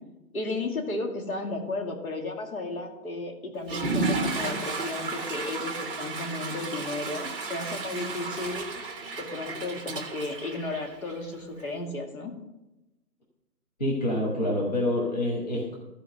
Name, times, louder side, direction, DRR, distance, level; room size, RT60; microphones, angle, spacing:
voice 1, 0.3-8.7 9.2-12.3, left 2 dB, 60° left, 3 dB, 2.2 m, -34 dB
Water / Toilet flush, 3.6-11.3, right 3 dB, 35° right, 1.5 m, -33 dB
voice 2, 13.8-15.8, left 1 dB, 25° left, -3 dB, 1.2 m, -27 dB
14.0 x 4.9 x 6.5 m, 0.99 s
hypercardioid pair, 175°, 49 cm